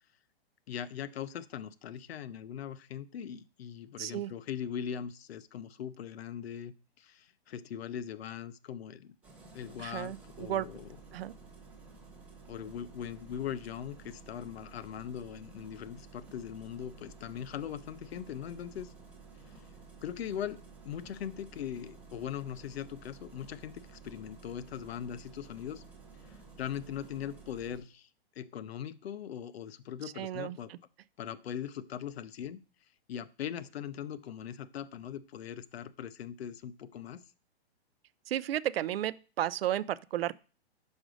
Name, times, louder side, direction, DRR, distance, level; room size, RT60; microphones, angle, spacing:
voice 1, 0.7-9.2 9.5-11.0 12.5-18.9 20.0-25.8 26.3-28.1 28.4-30.7 31.2-32.6 33.1-37.2, left 9 dB, 75° left, 0.7 m, -40 dB
voice 2, 4.0-4.3 9.8-10.7 11.1-11.3 30.2-30.8 38.3-40.4, right 12 dB, 70° right, 0.4 m, -33 dB
Engine starting, 9.2-27.8, right 4 dB, 5° right, 0.6 m, -53 dB
5.2 x 5.0 x 6.2 m
hypercardioid pair, 170°, 31 cm